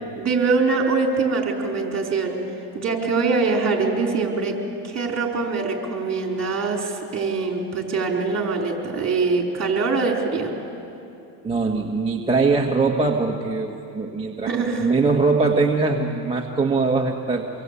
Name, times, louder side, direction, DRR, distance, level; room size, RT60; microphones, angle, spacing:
voice 1, 0.2-2.4 2.7-10.5 14.5-14.9, right 4 dB, 30° right, 1 dB, 4.7 m, -23 dB
voice 2, 11.4-17.5, right 3 dB, 10° right, -1 dB, 1.7 m, -22 dB
25.5 x 23.5 x 8.5 m, 2.8 s
supercardioid pair, 110°, 50 cm